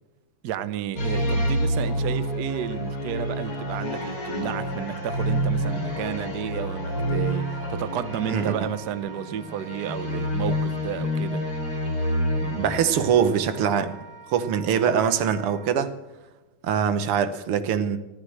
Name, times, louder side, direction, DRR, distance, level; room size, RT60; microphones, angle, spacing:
voice 1, 0.4-11.4, right 10 dB, 60° right, 1.1 m, -32 dB
sound 1, 1.0-13.5, equal, 75° left, 5.3 m, -28 dB
Wind instrument woodwind instrument, 7.4-15.7, right 6 dB, 40° right, 4.1 m, -45 dB
voice 2, 12.4-14.0 14.3-15.9 16.6-18.0, right 8 dB, 80° right, 2.0 m, -23 dB
15.0 x 13.0 x 6.5 m
omnidirectional pair, 2.4 m